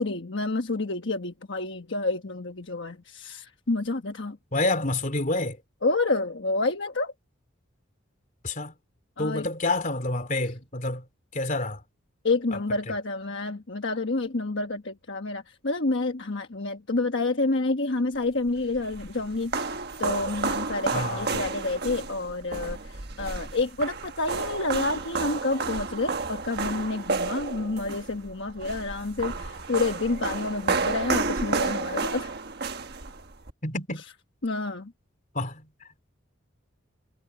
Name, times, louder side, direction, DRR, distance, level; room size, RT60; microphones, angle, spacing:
voice 1, 0.0-4.4 5.8-7.1 9.2-9.5 12.2-19.7 20.0-32.3 34.4-34.9, left 3 dB, 60° left, 1.3 m, -29 dB
voice 2, 4.5-5.6 8.4-8.7 9.2-11.0 11.3-11.8 20.9-21.4 33.6-34.0 35.3-35.7, left 2 dB, 40° left, 3.4 m, -28 dB
sound 1, 18.5-33.5, right 4 dB, 55° right, 1.4 m, -31 dB
head